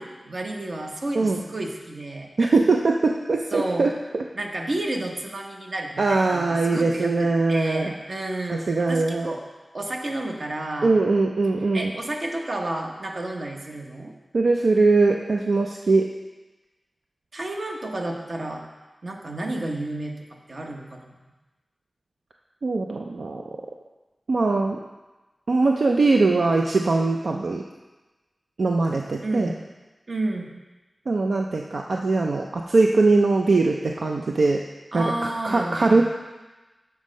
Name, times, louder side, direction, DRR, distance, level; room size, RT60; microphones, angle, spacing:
voice 1, 0.0-2.3 3.5-3.9 4.3-9.4 9.7-10.9 11.7-14.1 17.3-18.6 19.0-20.1 20.5-21.1 29.2-29.6 30.1-30.6 34.9-36.0, right 1 dB, 55° right, 1 dB, 0.9 m, -31 dB
voice 2, 2.4-3.9 6.0-7.9 8.5-9.3 10.8-11.9 14.3-16.1 22.6-23.4 24.3-24.8 25.5-27.6 28.6-29.5 31.1-34.6 34.9-36.0, right 3 dB, 75° right, 1 dB, 0.4 m, -21 dB
7.2 x 4.2 x 6.3 m, 1.1 s
wide cardioid pair, 95°, 0 cm